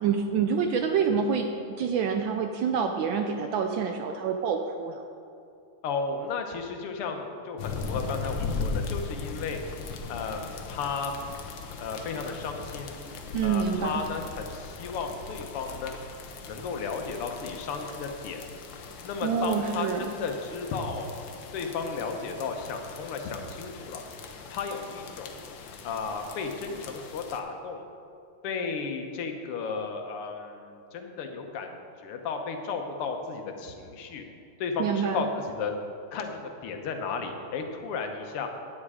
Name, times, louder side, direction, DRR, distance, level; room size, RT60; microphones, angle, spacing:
voice 1, 0.0-5.0 13.3-14.0 19.2-20.1 34.8-35.3, right 6 dB, 75° right, 5 dB, 1.2 m, -27 dB
voice 2, 5.8-9.6 10.1-11.1 11.8-12.9 13.4-16.0 16.5-18.4 19.0-21.1 21.5-24.0 24.5-25.4 25.8-27.8 28.4-34.3 34.6-35.7 36.1-38.5, left 5 dB, 85° left, 5 dB, 1.9 m, -34 dB
sound 1, 7.6-27.4, left 4 dB, 65° left, 1.4 m, -39 dB
9.9 x 9.6 x 4.9 m, 2.6 s
omnidirectional pair, 2.4 m